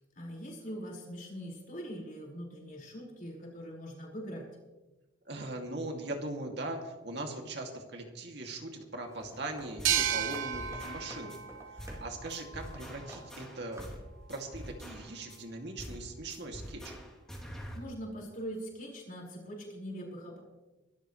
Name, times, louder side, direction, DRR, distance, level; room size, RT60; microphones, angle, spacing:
voice 1, 0.2-4.5 17.4-20.4, equal, 45° left, -2 dB, 5.2 m, -42 dB
voice 2, 5.3-11.4 11.7-14.0 14.3-16.9, right 2 dB, 60° right, 2 dB, 2.6 m, -40 dB
sound 1, 9.0-13.5 13.7-14.1, right 1 dB, 15° right, 4.0 m, -51 dB
sound 2, 9.8-10.0 10.3-11.4 11.8-12.0 12.3-14.0 14.3-15.4 15.8-16.0 16.3-17.8, equal, 5° left, 3.0 m, -45 dB
sound 3, 9.8-13.2, right 10 dB, 85° right, 0.9 m, -34 dB
23.5 x 13.5 x 3.3 m, 1.1 s
head